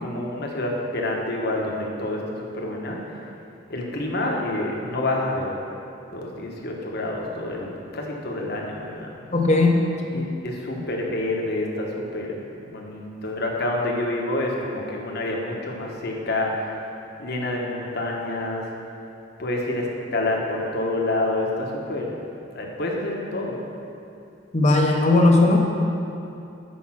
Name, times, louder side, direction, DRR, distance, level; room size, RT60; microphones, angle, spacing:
voice 1, 0.0-3.1 3.7-5.5 6.1-9.2 10.1-16.8 17.2-18.7 19.4-22.2 22.5-23.6, left 2 dB, 55° left, -1 dB, 1.2 m, -28 dB
voice 2, 9.3-9.8 24.5-25.6, left 2 dB, 35° left, 1 dB, 0.8 m, -17 dB
8.4 x 5.2 x 5.8 m, 2.7 s
head